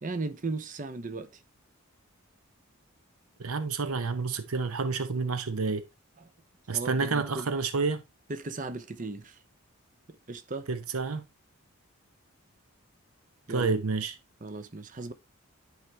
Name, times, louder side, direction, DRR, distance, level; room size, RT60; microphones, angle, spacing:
voice 1, 0.0-1.4 6.2-6.3 6.7-7.5 8.3-9.4 10.3-10.7 13.5-13.7 14.4-15.1, right 3 dB, 35° right, 0.7 m, -36 dB
voice 2, 3.4-5.8 6.7-8.0 10.7-11.2 13.5-14.1, right 4 dB, 80° right, 0.8 m, -29 dB
10.5 x 4.9 x 3.2 m
head